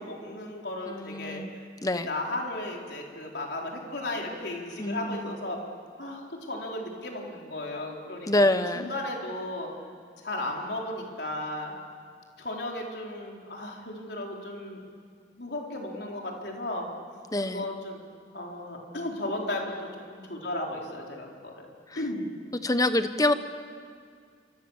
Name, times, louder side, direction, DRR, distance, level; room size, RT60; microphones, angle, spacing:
voice 1, 0.0-1.4 2.1-5.6 6.0-8.5 8.7-9.7 10.2-11.7 12.4-14.8 15.4-16.9 17.5-18.0 18.3-21.7 22.0-22.2, left 1 dB, 65° left, 0 dB, 4.2 m, -35 dB
voice 2, 0.9-1.5 1.8-2.1 4.8-5.3 8.3-8.9 17.3-17.7 21.9-22.0 22.6-23.3, left 1 dB, 20° left, 10 dB, 1.1 m, -26 dB
28.0 x 25.5 x 7.4 m, 2.1 s
head